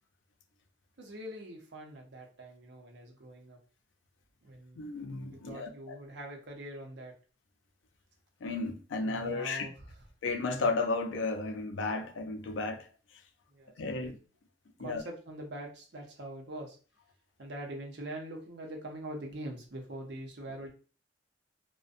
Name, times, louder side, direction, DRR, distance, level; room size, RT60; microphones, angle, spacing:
voice 1, 1.0-3.6 4.4-4.9 5.3-7.1 9.0-9.7 13.5-14.2 14.8-16.8 17.4-20.7, right 1 dB, 65° right, 0.7 m, -43 dB
voice 2, 4.8-6.0 8.4-9.7 10.2-12.9 13.8-14.2 14.8-15.0, left 3 dB, 85° left, 0.4 m, -33 dB
2.5 x 2.1 x 2.4 m
head